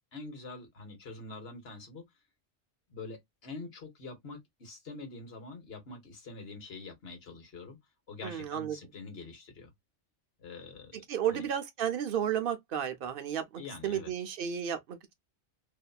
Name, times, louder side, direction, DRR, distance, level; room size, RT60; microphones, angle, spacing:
voice 1, 0.1-2.1 2.9-7.8 8.1-9.7 10.4-11.5 13.6-14.1, left 3 dB, 60° left, 1.3 m, -45 dB
voice 2, 8.2-8.8 10.9-15.1, right 9 dB, 60° right, 0.7 m, -33 dB
2.9 x 2.6 x 2.2 m
omnidirectional pair, 1.2 m